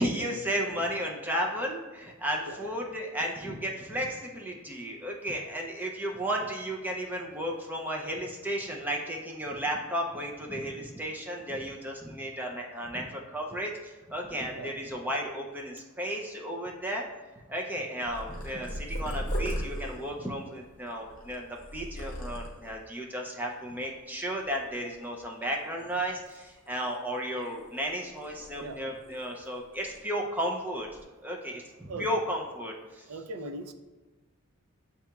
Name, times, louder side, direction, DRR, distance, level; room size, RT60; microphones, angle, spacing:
voice 1, 0.0-17.0 17.5-30.9 31.2-33.1, equal, 10° right, 0 dB, 0.4 m, -34 dB
Purr, 18.1-22.9 23.5-23.9 24.2-25.4 25.8-27.9 28.2-29.5 29.7-30.0 30.7-31.0, equal, 40° left, 0.9 m, -38 dB
voice 2, 33.1-33.7, right 2 dB, 85° right, 8 dB, 0.5 m, -39 dB
8.2 x 2.8 x 2.2 m, 1.2 s
head